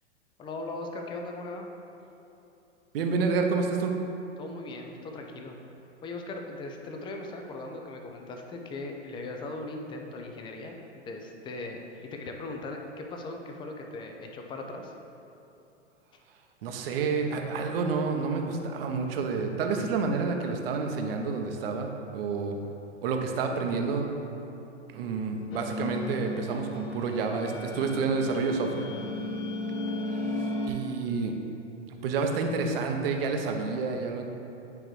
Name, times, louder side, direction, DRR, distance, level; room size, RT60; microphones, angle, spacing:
voice 1, 0.4-1.7 4.4-5.6 6.0-14.9, left 2 dB, 15° left, 3 dB, 0.4 m, -39 dB
voice 2, 2.9-3.9 16.6-22.5 23.0-24.1 24.9-28.9 30.3-31.4 32.0-34.2, right 4 dB, 55° right, 3 dB, 0.8 m, -29 dB
sound 1, 25.5-30.7, left 2 dB, 45° left, 0.9 m, -35 dB
8.9 x 4.7 x 3.2 m, 2.9 s
figure-of-eight pair, 105°, 36 cm